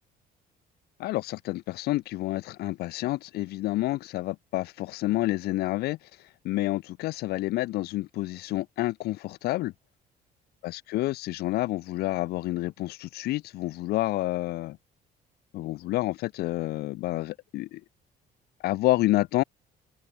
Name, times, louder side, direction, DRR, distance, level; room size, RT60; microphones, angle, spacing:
voice 1, 1.0-6.0 6.4-9.7 10.6-14.8 15.5-17.8 18.6-19.4, left 17 dB, 70° left, 0.4 m, -29 dB
open air
cardioid pair, 110°, 17 cm